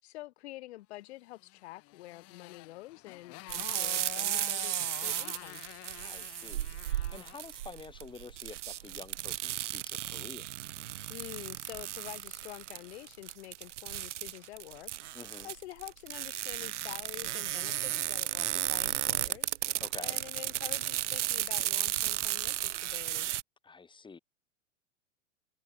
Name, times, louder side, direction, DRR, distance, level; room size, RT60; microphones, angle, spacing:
voice 1, 0.0-5.6 11.1-19.6 20.0-23.3, left 17 dB, 55° left, 6.7 m, -47 dB
Motorcycle, 1.4-7.5, left 21 dB, 40° left, 3.1 m, -47 dB
sound 1, 3.5-23.4, right 13 dB, 65° right, 0.9 m, -34 dB
voice 2, 6.0-10.4 15.1-15.5 19.8-20.2 23.6-24.2, left 4 dB, 10° left, 3.2 m, -48 dB
figure-of-eight pair, 100°, 38 cm